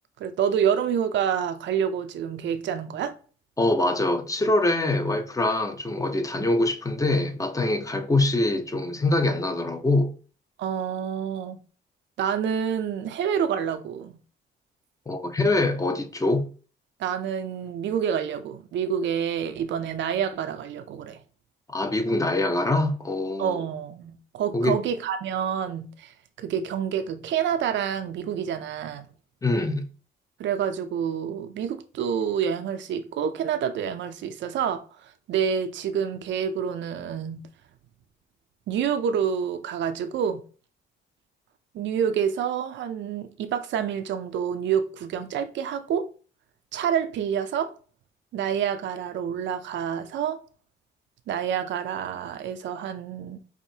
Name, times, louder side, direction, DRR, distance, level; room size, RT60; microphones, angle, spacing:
voice 1, 0.2-3.1 6.4-6.5 10.6-11.6 12.2-14.1 17.0-21.2 23.4-29.1 30.4-37.4 38.7-40.4 41.7-46.1 46.7-47.7 48.3-50.4 51.3-53.4, right 8 dB, 70° right, 0.5 m, -28 dB
voice 2, 3.6-10.1 15.1-16.5 21.7-23.6 24.5-24.8 29.4-29.9, left 2 dB, 15° left, 0.7 m, -24 dB
4.8 x 2.6 x 2.7 m
cardioid pair, 90°, 20 cm